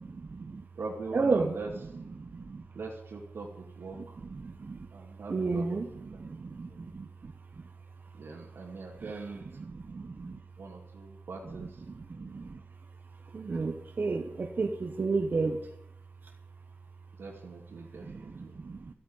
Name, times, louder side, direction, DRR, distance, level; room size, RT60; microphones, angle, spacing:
voice 1, 0.0-0.6 1.1-1.6 1.9-2.6 3.9-4.9 5.3-7.3 9.0-10.4 11.4-11.7 11.9-12.6 13.3-15.6 18.0-18.9, right 4 dB, 50° right, 4 dB, 1.1 m, -33 dB
voice 2, 0.8-1.7 2.7-3.5 3.8-4.2 4.9-6.2 8.2-9.5 10.6-11.7 17.2-18.5, right 4 dB, 80° right, -3 dB, 2.4 m, -41 dB
13.5 x 8.7 x 9.5 m, 0.78 s
wide cardioid pair, 110°, 4 cm